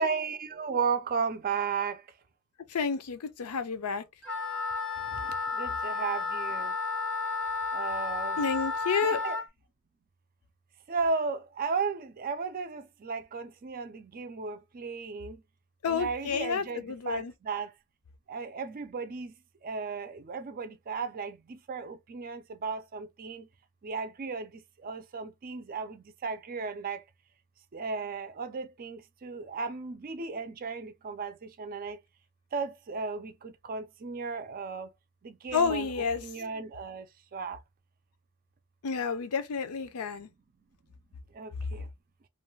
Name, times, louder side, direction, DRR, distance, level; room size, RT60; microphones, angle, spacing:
voice 1, 0.0-2.0 5.1-6.7 7.7-8.5 9.0-9.4 10.9-15.4 15.9-17.7 18.3-19.3 19.6-23.5 23.8-27.0 27.7-32.0 32.5-34.9 35.2-37.1 37.3-37.6 41.3-41.9, right 5 dB, 40° right, 0.4 m, -35 dB
voice 2, 2.7-4.0 8.4-9.2 15.8-17.3 35.5-36.2 38.8-40.3, left 5 dB, 80° left, 0.5 m, -30 dB
Wind instrument woodwind instrument, 4.2-9.4, left 4 dB, 5° left, 0.7 m, -32 dB
2.5 x 2.3 x 3.1 m
head